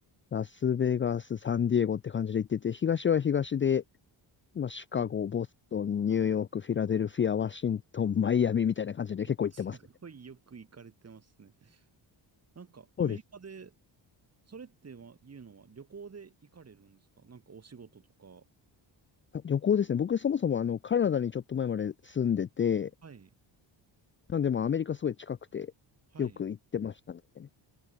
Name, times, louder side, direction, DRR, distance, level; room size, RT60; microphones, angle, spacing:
voice 1, 0.3-3.8 4.6-5.5 5.7-9.8 13.0-13.2 19.4-22.9 24.3-25.7 26.2-27.5, left 8 dB, 25° left, 0.5 m, -29 dB
voice 2, 9.5-11.9 12.5-13.8 14.5-18.5 23.0-23.3 26.1-26.4, right 5 dB, 35° right, 7.9 m, -50 dB
cardioid pair, 145°, 45 cm